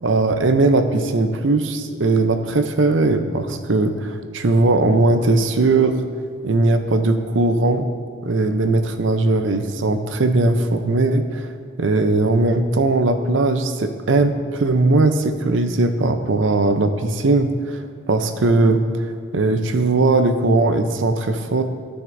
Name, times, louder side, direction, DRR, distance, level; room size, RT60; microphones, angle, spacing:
voice 1, 0.0-6.0 6.4-7.9 8.2-11.5 11.8-18.8 19.3-21.6, right 2 dB, 65° right, 8 dB, 0.6 m, -19 dB
15.0 x 6.1 x 2.6 m, 2.1 s
head